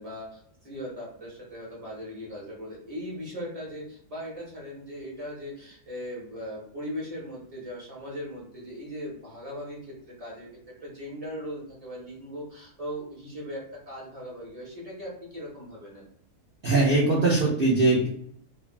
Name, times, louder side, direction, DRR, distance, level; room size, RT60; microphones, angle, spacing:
voice 1, 0.0-10.5 10.8-16.0, equal, 30° right, -4 dB, 0.7 m, -39 dB
voice 2, 16.6-18.1, right 2 dB, 70° right, -4 dB, 0.5 m, -21 dB
3.2 x 2.1 x 2.3 m, 0.65 s
omnidirectional pair, 1.7 m